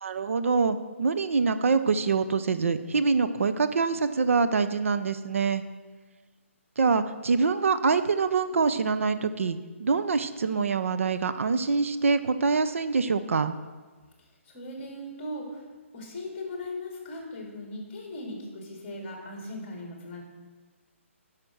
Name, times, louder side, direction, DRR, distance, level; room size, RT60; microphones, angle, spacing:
voice 1, 0.0-5.6 6.8-13.5, right 4 dB, 70° right, 11 dB, 0.6 m, -25 dB
voice 2, 14.2-15.6 15.9-20.2, left 1 dB, 20° left, 0 dB, 2.0 m, -38 dB
9.8 x 5.8 x 6.4 m, 1.4 s
hypercardioid pair, 175°, 7 cm